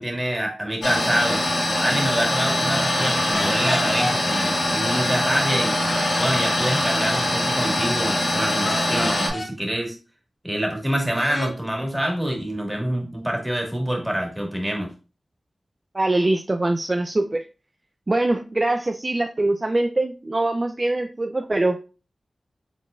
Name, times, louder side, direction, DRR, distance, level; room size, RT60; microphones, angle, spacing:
voice 1, 0.0-1.4 1.8-5.7 6.2-10.0 10.4-14.9, right 1 dB, 10° right, 1 dB, 1.8 m, -26 dB
sound 1, 0.8-9.3, left 1 dB, 80° left, 1.6 m, -23 dB
sound 2, 3.3-4.5 8.6-9.5 11.1-11.5, left 1 dB, 40° left, 1.3 m, -30 dB
voice 2, 15.9-17.4 18.1-21.8, right 2 dB, 40° right, 5 dB, 0.4 m, -23 dB
4.8 x 3.7 x 2.4 m, 0.33 s
cardioid pair, 45°, 0 cm